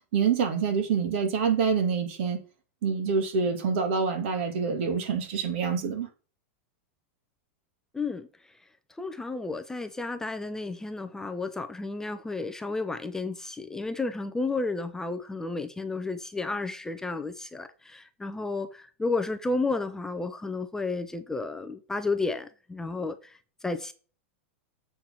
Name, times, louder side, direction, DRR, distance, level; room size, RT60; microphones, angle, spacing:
voice 1, 0.1-2.4 2.8-6.1, right 6 dB, 60° right, 2.1 m, -26 dB
voice 2, 7.9-8.3 9.0-23.9, left 3 dB, 5° left, 0.5 m, -32 dB
7.6 x 4.5 x 5.5 m
supercardioid pair, 140°, 7 cm